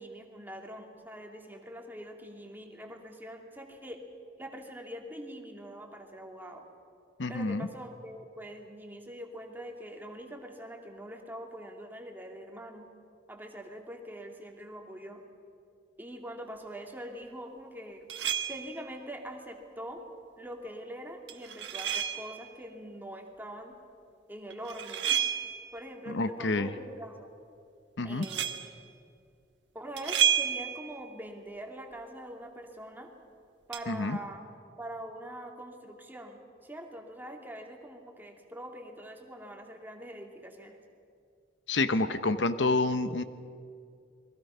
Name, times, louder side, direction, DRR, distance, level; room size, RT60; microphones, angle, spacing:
voice 1, 0.0-4.0 4.4-6.7 7.3-12.9 13.3-15.2 16.0-18.1 18.5-20.0 20.4-23.7 24.3-25.2 25.7-27.3 28.0-28.5 29.7-33.1 33.7-34.4 34.8-40.8, equal, 10° right, 2 dB, 2.5 m, -43 dB
voice 2, 7.2-7.7 26.1-26.7 28.0-28.3 33.9-34.2 41.7-43.2, left 3 dB, 75° left, 11 dB, 0.9 m, -28 dB
sound 1, 18.1-18.8 21.3-22.4 24.5-25.8 28.2-28.7 30.0-31.0 33.7-33.8, right 9 dB, 70° right, 1.6 m, -30 dB
29.5 x 22.0 x 5.6 m, 2.4 s
head